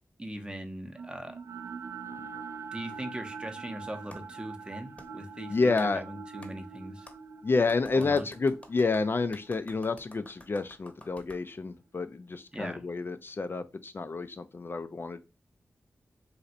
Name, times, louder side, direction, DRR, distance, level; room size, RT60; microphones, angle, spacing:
voice 1, 0.2-1.4 2.2-2.3 2.7-7.1 7.9-8.3 12.5-12.9, right 1 dB, 20° right, 0.7 m, -40 dB
sound 1, 0.9-11.1, right 5 dB, 65° right, 0.3 m, -44 dB
Clapping, 4.1-4.2 5.0-5.1 5.8-5.9 6.4-6.5 7.1-7.2 7.7-11.4, left 1 dB, 25° left, 0.8 m, -51 dB
voice 2, 5.5-6.0 7.4-15.2, left 4 dB, 45° left, 0.4 m, -29 dB
2.6 x 2.4 x 4.2 m
cardioid pair, 55°, 5 cm